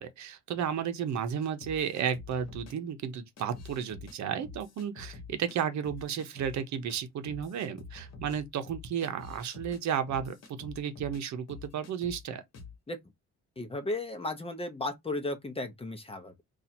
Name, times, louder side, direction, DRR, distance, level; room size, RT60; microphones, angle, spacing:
voice 1, 0.0-12.4, right 8 dB, 70° right, 0.8 m, -33 dB
sound 1, 1.6-2.7 3.4-4.2 4.4-5.6 5.8-6.6 6.9-7.0 7.2-11.2 11.5-12.2 12.5-12.8, left 4 dB, 60° left, 1.1 m, -47 dB
voice 2, 13.6-16.3, left 2 dB, 20° left, 0.7 m, -35 dB
2.7 x 2.5 x 4.2 m
cardioid pair, 100°, 29 cm